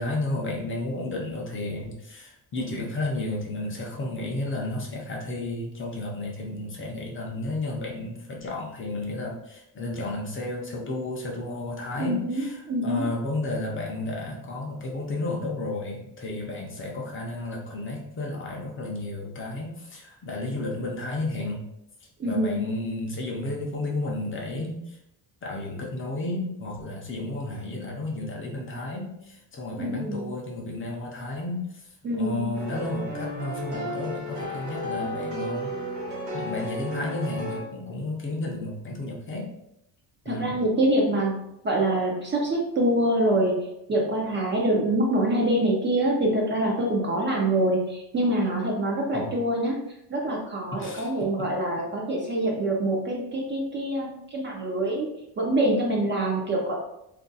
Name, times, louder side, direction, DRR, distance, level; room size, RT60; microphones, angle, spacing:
voice 1, 0.0-21.6 22.2-25.0 25.4-31.9 32.2-35.7 36.3-39.5 40.2-40.5 49.1-49.3 50.7-51.1 51.4-51.5, left 2 dB, 30° left, -1 dB, 0.5 m, -32 dB
voice 2, 12.0-13.1 22.2-22.7 29.8-30.3 32.0-32.5 40.3-49.8 50.1-55.1 55.4-56.8, right 1 dB, 30° right, -2 dB, 0.4 m, -25 dB
sound 1, 32.5-37.6, equal, 45° right, 1.2 m, -33 dB
2.4 x 2.2 x 3.9 m, 0.82 s
cardioid pair, 170°, 40 cm